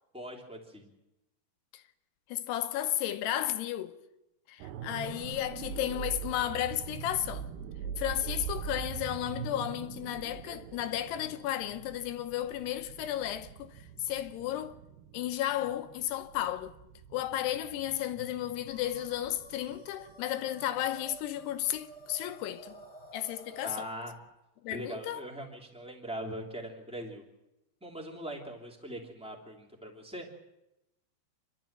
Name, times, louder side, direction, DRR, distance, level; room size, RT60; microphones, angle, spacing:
voice 1, 0.1-0.9 23.6-24.1 24.7-27.2 27.8-30.3, equal, ahead, 2.1 m, -41 dB
voice 2, 2.3-4.0 4.5-7.5 8.0-14.8 15.1-16.8 17.1-22.7 23.1-23.9 24.6-25.2, left 12 dB, 75° left, 2.8 m, -33 dB
sound 1, 4.6-22.5 22.8-23.0, right 8 dB, 80° right, 3.0 m, -43 dB
sound 2, 18.6-23.8, right 2 dB, 15° left, 1.4 m, -52 dB
28.5 x 12.0 x 7.5 m
omnidirectional pair, 5.0 m